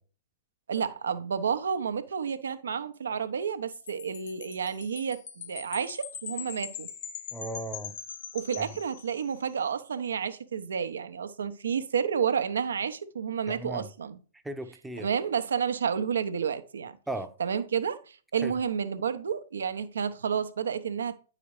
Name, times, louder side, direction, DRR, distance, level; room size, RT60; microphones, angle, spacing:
voice 1, 0.7-6.9 8.3-14.2 15.0-17.0 17.4-21.2, right 7 dB, 75° right, 0.6 m, -30 dB
Wind chime, 3.7-9.4, left 8 dB, 60° left, 1.0 m, -42 dB
voice 2, 7.3-8.0 8.6-8.7 13.5-13.9 14.4-15.1 17.1-17.3 18.4-18.5, right 1 dB, 5° right, 0.6 m, -36 dB
9.4 x 4.9 x 3.2 m
hypercardioid pair, 115°, 0 cm